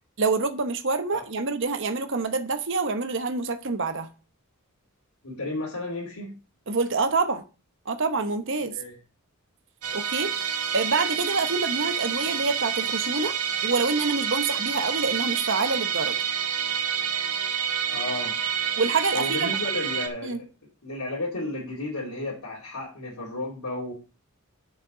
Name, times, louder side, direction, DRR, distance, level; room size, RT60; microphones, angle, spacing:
voice 1, 0.2-4.1 6.7-7.4 7.9-8.7 9.9-10.3 10.7-13.3 13.6-16.2 18.8-19.5 20.2-20.4, right 3 dB, 55° right, 1.0 m, -26 dB
voice 2, 5.2-6.4 8.7-9.0 17.9-18.4 19.1-20.5 20.8-23.9, left 2 dB, 90° left, 2.8 m, -33 dB
Musical instrument, 9.8-20.1, right 7 dB, 90° right, 1.5 m, -28 dB
6.6 x 6.6 x 6.1 m
head